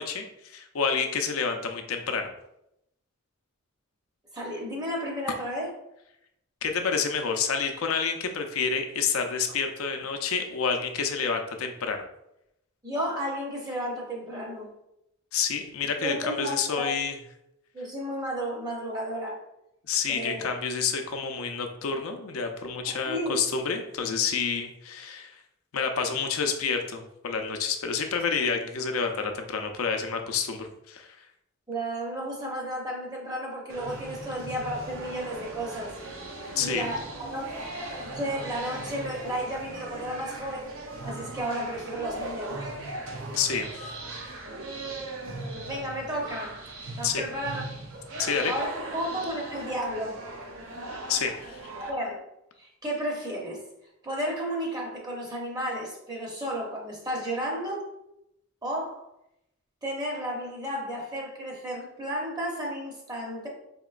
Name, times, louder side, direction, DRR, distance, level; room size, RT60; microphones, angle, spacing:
voice 1, 0.0-2.3 6.6-12.0 15.3-17.1 19.9-25.4 25.7-31.1 36.6-36.8 43.4-43.9 47.0-47.2 48.2-48.5 51.1-51.6, left 5 dB, 80° left, 5 dB, 0.5 m, -29 dB
voice 2, 4.3-5.7 12.8-14.7 16.0-16.9 17.7-19.4 20.1-20.5 22.8-23.4 31.7-35.9 36.6-37.5 38.0-40.7 41.0-42.6 45.7-46.7 47.0-47.6 48.5-50.2 51.8-52.2 52.6-53.7 54.0-57.9 58.6-59.1 59.8-63.5, equal, 20° right, -2 dB, 0.6 m, -33 dB
sound 1, 33.7-51.9, right 2 dB, 70° right, 0.6 m, -39 dB
4.3 x 2.9 x 2.4 m, 0.83 s
head